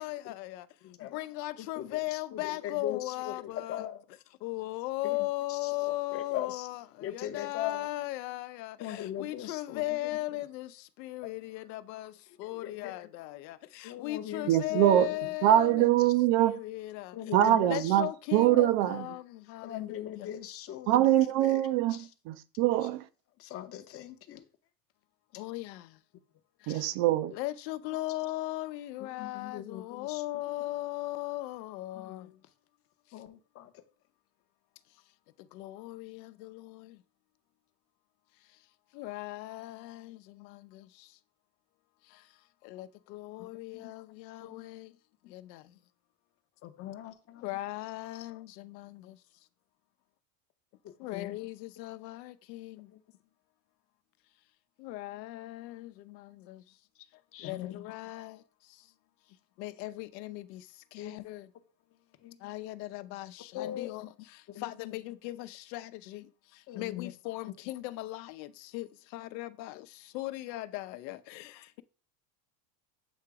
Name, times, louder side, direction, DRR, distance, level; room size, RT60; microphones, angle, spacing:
voice 1, 0.0-0.7 1.0-4.0 4.4-16.1 16.4-20.3 25.3-26.0 26.6-26.9 27.3-32.3 33.1-33.2 35.4-37.0 38.4-38.6 38.9-41.2 42.0-45.0 45.3-45.8 47.4-49.2 51.0-52.9 54.8-56.8 57.1-58.9 59.6-61.5 62.4-71.8, left 17 dB, 85° left, 0.7 m, -38 dB
voice 2, 0.8-1.2 1.6-4.0 5.5-5.7 6.1-6.7 7.0-7.9 8.8-9.8 12.5-12.9 13.8-15.9 17.1-17.9 18.5-18.6 19.6-21.6 21.9-22.1 23.4-24.4 26.7-26.9 29.2-30.2 32.0-32.3 33.1-33.8 43.4-43.5 43.7-43.9 44.4-44.5 46.8-47.4 50.8-51.3 52.9-53.0 57.3-57.8 61.0-61.1 62.2-62.5 63.5-64.1 64.5-64.7 66.7-67.1, left 11 dB, 30° left, 0.6 m, -40 dB
voice 3, 14.5-15.1 15.4-16.6 17.3-19.0 20.9-23.0 26.7-27.3, right 13 dB, 55° right, 0.5 m, -24 dB
8.0 x 2.9 x 4.7 m
supercardioid pair, 150°, 49 cm